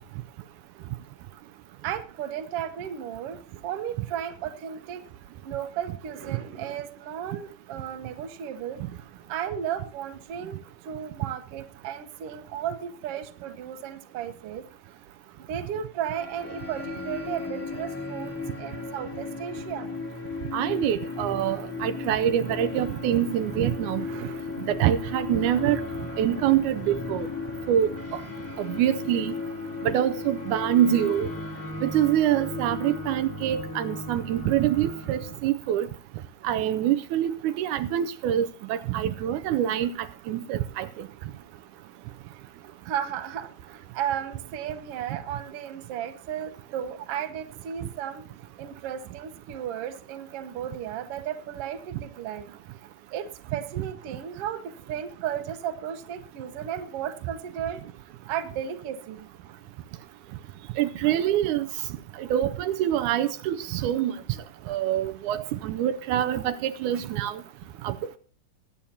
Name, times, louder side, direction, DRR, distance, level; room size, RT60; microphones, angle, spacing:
voice 1, 1.8-3.4 3.6-5.0 5.4-14.6 15.5-20.0 24.0-24.6 42.8-48.2 48.6-52.6 53.1-57.8 58.3-59.3, right 9 dB, 60° right, 1.9 m, -34 dB
sound 1, 16.1-35.4, left 3 dB, 5° left, 1.9 m, -35 dB
voice 2, 20.5-24.1 24.8-25.8 26.2-27.3 27.7-28.2 28.6-29.3 29.8-31.3 31.8-35.9 36.4-41.1 60.8-61.7 62.2-64.1 64.7-67.4 67.8-67.9, right 11 dB, 85° right, 2.1 m, -25 dB
22.0 x 8.6 x 2.8 m
omnidirectional pair, 3.5 m